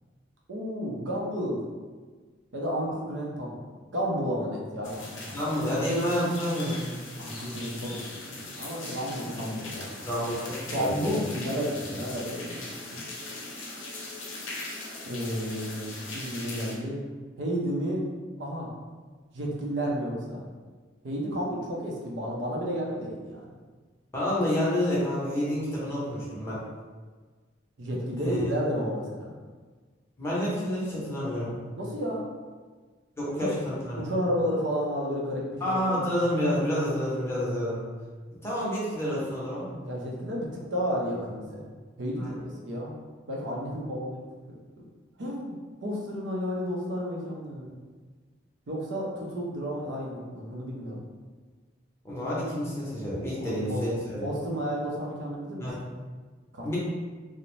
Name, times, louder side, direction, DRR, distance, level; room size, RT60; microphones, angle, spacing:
voice 1, 0.5-1.6 2.5-3.7 3.9-5.4 7.2-10.1 10.7-12.6 12.9-13.0 15.0-17.1 17.4-18.0 18.4-18.7 19.3-20.4 21.0-23.4 27.8-29.3 31.8-32.3 33.4-33.5 34.0-35.9 39.8-41.6 42.0-42.9 43.3-44.2 45.2-47.7 48.7-51.0 53.4-53.8 54.2-55.7 56.5-56.7, equal, 70° right, -3 dB, 0.5 m, -32 dB
sound 1, 4.8-16.7, left 2 dB, 90° left, 0.5 m, -40 dB
voice 2, 5.3-6.8 10.1-11.2 24.1-26.6 28.2-28.4 30.2-31.6 33.2-34.0 35.6-37.8 38.4-39.7 42.2-42.3 52.0-54.2 55.6-55.8 56.6-56.8, equal, 15° left, -8 dB, 0.7 m, -29 dB
2.5 x 2.0 x 3.1 m, 1.4 s
head